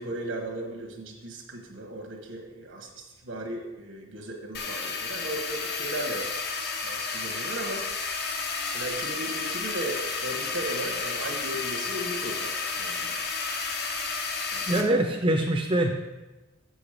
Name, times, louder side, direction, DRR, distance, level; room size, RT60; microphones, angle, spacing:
voice 1, 0.0-6.2 6.8-7.9 8.7-13.3 14.5-14.8, right 1 dB, 85° right, 2 dB, 1.2 m, -36 dB
sound 1, 4.5-14.8, left 4 dB, 55° left, 0.9 m, -32 dB
voice 2, 14.7-15.9, right 1 dB, 25° right, 3 dB, 0.5 m, -24 dB
7.0 x 6.4 x 5.0 m, 1.1 s
head